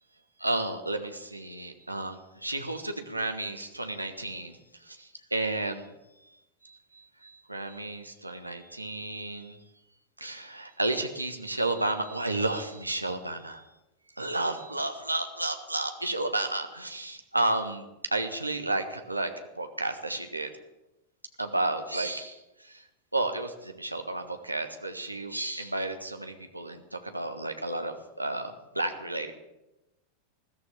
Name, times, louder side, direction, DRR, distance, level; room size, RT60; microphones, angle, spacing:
voice 1, 0.4-4.6 4.9-5.8 6.6-6.8 7.2-9.6 10.2-13.6 14.2-20.5 21.4-22.8 23.1-29.3, right 2 dB, 85° right, 6 dB, 1.3 m, -32 dB
20.5 x 14.0 x 3.5 m, 0.97 s
figure-of-eight pair, 90°, 0 cm